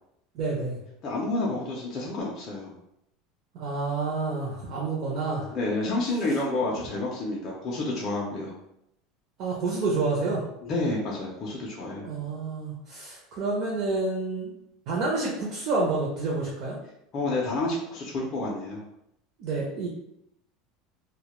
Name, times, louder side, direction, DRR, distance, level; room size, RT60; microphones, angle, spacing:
voice 1, 0.3-0.8 3.5-5.6 9.4-10.4 12.0-14.5 14.9-16.8 19.4-19.9, right 3 dB, 45° right, -4 dB, 0.5 m, -29 dB
voice 2, 1.0-2.7 5.5-8.5 10.6-12.1 17.1-18.8, left 2 dB, 30° left, -4 dB, 0.4 m, -29 dB
2.1 x 2.1 x 2.9 m, 0.79 s
cardioid pair, 170°, 0 cm